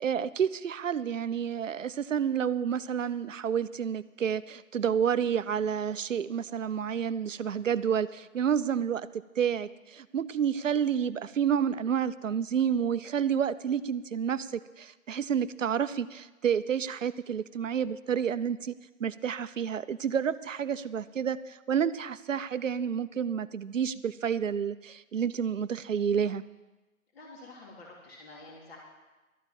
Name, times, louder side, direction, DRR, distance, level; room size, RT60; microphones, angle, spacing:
voice 1, 0.0-18.7 19.0-26.4, right 8 dB, 60° right, 15 dB, 0.6 m, -29 dB
voice 2, 27.1-28.8, left 2 dB, 45° left, -2 dB, 3.2 m, -48 dB
12.5 x 9.1 x 7.2 m, 1.1 s
figure-of-eight pair, 150°, 43 cm